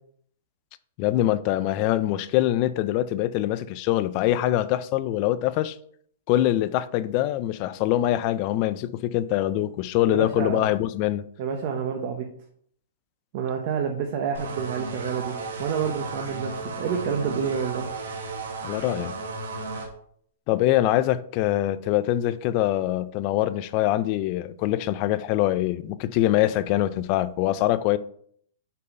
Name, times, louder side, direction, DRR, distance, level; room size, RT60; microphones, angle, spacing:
voice 1, 1.0-5.8 6.3-11.2 18.6-19.1 20.5-28.0, left 14 dB, 30° left, 0.3 m, -24 dB
voice 2, 10.1-10.7 11.4-12.3 13.3-17.9, right 7 dB, 35° right, 0.7 m, -28 dB
sound 1, 14.3-19.9, right 3 dB, 80° right, 1.5 m, -34 dB
5.4 x 4.1 x 5.3 m
hypercardioid pair, 165°, 0 cm